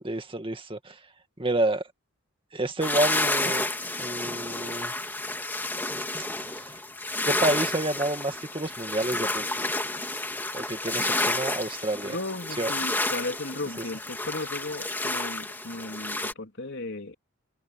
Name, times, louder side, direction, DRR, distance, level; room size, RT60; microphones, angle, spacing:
voice 1, 0.0-1.0 1.4-1.8 2.5-3.7 4.0-4.9 6.5-6.8 7.3-9.7 10.5-12.1 12.6-12.7, right 1 dB, 25° right, 2.1 m, -29 dB
sound 1, 2.8-16.3, left 2 dB, 10° left, 2.5 m, -30 dB
voice 2, 12.0-17.1, left 2 dB, 55° left, 3.7 m, -35 dB
open air
head